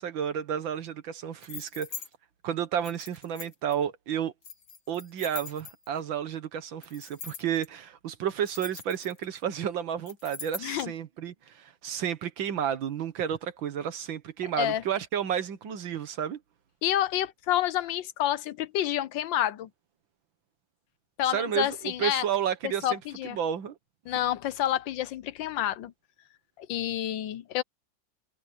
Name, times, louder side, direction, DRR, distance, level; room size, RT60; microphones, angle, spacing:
voice 1, 0.0-1.9 2.4-4.3 4.9-16.4 21.3-23.0 23.3-23.8, right 9 dB, 85° right, 2.0 m, -31 dB
sound 1, 1.4-2.1 2.8-3.7 4.4-6.0 6.8-7.7 8.3-9.4 10.1-10.8, left 6 dB, 60° left, 2.5 m, -42 dB
voice 2, 10.6-10.9 14.5-14.8 16.8-19.7 21.2-22.3 22.8-23.4 24.1-25.9 26.6-27.6, left 12 dB, 80° left, 1.5 m, -29 dB
omnidirectional pair, 2.0 m